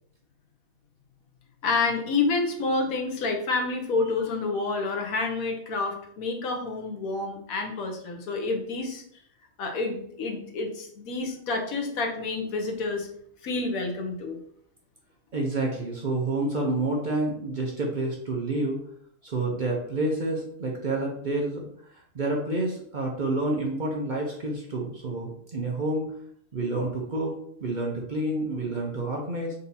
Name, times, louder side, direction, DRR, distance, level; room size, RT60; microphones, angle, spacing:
voice 1, 1.6-9.0 9.6-13.1 13.4-14.4, left 3 dB, 85° left, 2 dB, 1.3 m, -28 dB
voice 2, 15.3-18.8 19.2-21.6 22.1-26.1 26.5-29.5, right 2 dB, 45° right, -1 dB, 0.6 m, -29 dB
4.0 x 2.7 x 4.0 m, 0.66 s
omnidirectional pair, 1.4 m